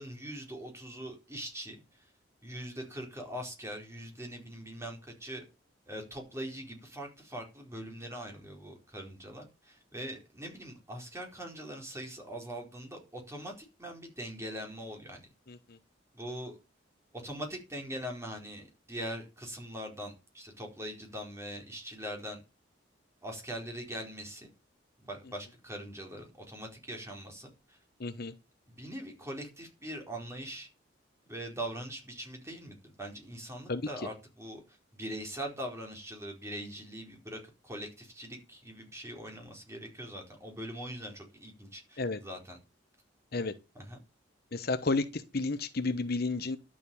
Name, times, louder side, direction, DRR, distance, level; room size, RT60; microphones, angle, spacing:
voice 1, 0.0-2.1 2.4-5.4 5.9-15.2 16.1-16.6 17.1-22.4 23.2-24.5 25.0-27.8 28.7-30.7 31.3-42.6 43.7-44.0, equal, 15° right, 4.5 m, -42 dB
voice 2, 15.5-15.8 28.0-28.3 33.7-33.8 42.0-42.2 43.3-43.5 44.5-46.6, left 3 dB, 55° left, 1.0 m, -32 dB
11.5 x 7.6 x 7.0 m
head